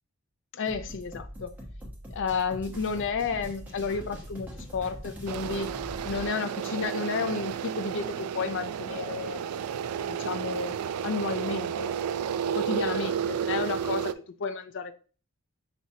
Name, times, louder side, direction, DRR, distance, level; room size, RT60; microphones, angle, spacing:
voice 1, 0.5-1.5 2.1-5.7 6.0-9.7 10.1-12.0 12.5-14.1 14.4-14.9, left 5 dB, 60° left, 0.4 m, -32 dB
sound 1, 0.7-6.3, equal, 10° right, 1.0 m, -42 dB
sound 2, 5.3-14.1, right 8 dB, 85° right, 0.3 m, -32 dB
5.9 x 2.9 x 2.7 m
head